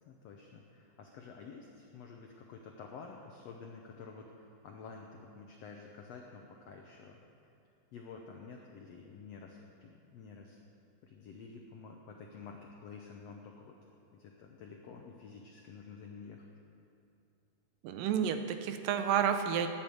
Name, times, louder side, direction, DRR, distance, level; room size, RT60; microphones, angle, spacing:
voice 1, 0.0-7.5 7.9-10.6 11.0-13.7 14.1-16.5, left 5 dB, 85° left, 1 dB, 1.4 m, -50 dB
voice 2, 17.8-19.7, right 8 dB, 85° right, 7 dB, 2.3 m, -30 dB
11.5 x 8.8 x 8.4 m, 2.7 s
omnidirectional pair, 4.1 m